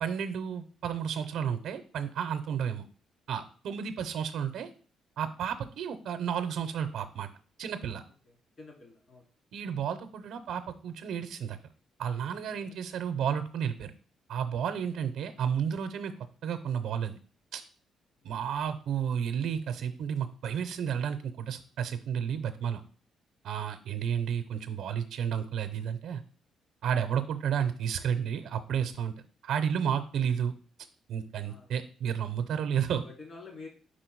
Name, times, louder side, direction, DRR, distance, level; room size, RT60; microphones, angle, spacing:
voice 1, 0.0-2.8 3.3-4.7 5.2-7.3 7.6-8.0 9.5-11.6 12.0-13.9 14.3-16.1 16.4-17.2 17.5-17.6 18.2-22.8 23.4-26.2 26.8-29.1 29.4-30.5 31.1-33.0, right 8 dB, 75° right, 7 dB, 0.5 m, -32 dB
voice 2, 8.3-9.2 12.6-12.8 31.4-31.7 33.0-33.7, left 3 dB, 50° left, 0 dB, 2.4 m, -48 dB
4.9 x 4.3 x 4.5 m, 0.42 s
cardioid pair, 90°, 0 cm